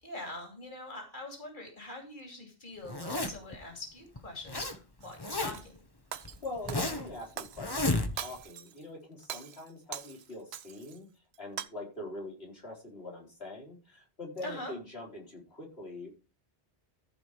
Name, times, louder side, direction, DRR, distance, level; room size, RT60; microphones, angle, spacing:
voice 1, 0.0-5.8 14.4-14.7, left 2 dB, 50° left, 2 dB, 3.0 m, -43 dB
Zipper (clothing), 2.9-3.6 4.2-4.8 5.0-5.8 6.2-7.1 7.6-8.4, left 2 dB, 25° left, 1.2 m, -32 dB
Shatter, 5.0-5.7 6.1-7.8 8.2-8.8 9.2-11.0 11.3-11.7, right 10 dB, 85° right, 0.9 m, -42 dB
voice 2, 6.4-11.1 11.4-16.1, left 2 dB, 80° left, -2 dB, 4.2 m, -43 dB
14.5 x 5.0 x 4.8 m, 0.32 s
omnidirectional pair, 1.0 m